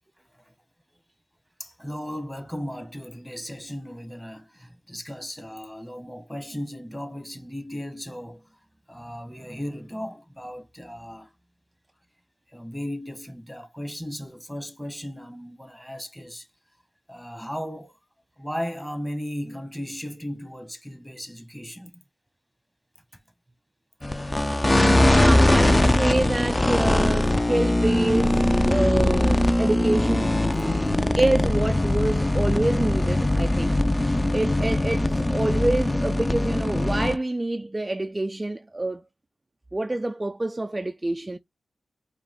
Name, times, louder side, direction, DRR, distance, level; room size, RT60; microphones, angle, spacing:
voice 1, 1.6-8.6 8.9-11.3 12.5-16.5 17.1-18.0 18.4-22.0, equal, 5° left, 1.2 m, -36 dB
sound 1, 24.0-37.2, left 1 dB, 20° left, 0.6 m, -21 dB
voice 2, 24.7-30.4 31.2-39.0 39.7-41.4, right 2 dB, 25° right, 0.3 m, -27 dB
4.9 x 2.4 x 3.7 m
cardioid pair, 55°, 0 cm